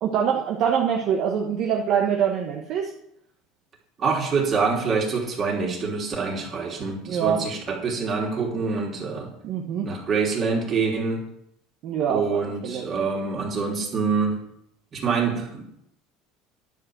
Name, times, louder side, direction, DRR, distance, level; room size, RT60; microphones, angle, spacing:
voice 1, 0.0-2.9 7.1-7.4 9.4-9.9 11.8-12.8, right 8 dB, 55° right, 1 dB, 1.1 m, -24 dB
voice 2, 4.0-9.3 9.8-11.2 12.1-14.4 14.9-15.6, right 5 dB, 35° right, -1 dB, 3.1 m, -25 dB
10.5 x 5.3 x 7.7 m, 0.75 s
supercardioid pair, 130°, 0 cm